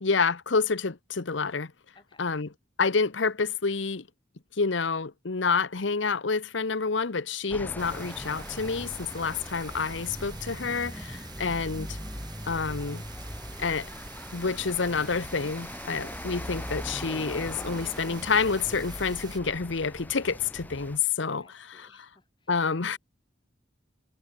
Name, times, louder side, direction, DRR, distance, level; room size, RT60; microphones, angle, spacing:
voice 1, 0.0-1.7 2.2-2.5 2.8-4.0 4.6-12.0 12.5-13.0 13.6-13.9 14.3-21.9 22.5-23.0, left 5 dB, 75° left, 1.0 m, -28 dB
voice 2, 1.9-2.3 11.3-11.6 21.4-22.6, left 3 dB, 25° left, 7.0 m, -61 dB
sound 1, 7.5-21.0, left 1 dB, 10° left, 1.1 m, -40 dB
sound 2, 7.8-19.4, right 4 dB, 20° right, 1.5 m, -47 dB
head